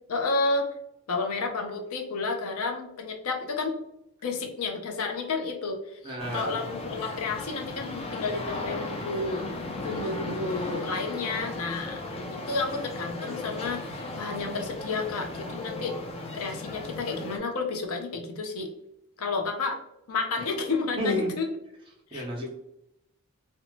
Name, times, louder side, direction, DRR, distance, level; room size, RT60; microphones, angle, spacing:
voice 1, 0.1-0.7 1.1-3.8 4.2-9.5 9.8-12.0 12.3-16.0 16.3-18.7 19.2-19.8 20.1-21.5 22.1-22.5, left 3 dB, 80° left, 3 dB, 0.5 m, -31 dB
voice 2, 6.0-6.5 20.4-20.5 21.0-21.3 22.1-22.5, left 1 dB, 25° right, -2 dB, 0.6 m, -30 dB
sound 1, 6.2-17.4, left 2 dB, 25° left, 0.3 m, -36 dB
2.6 x 2.1 x 2.9 m, 0.81 s
head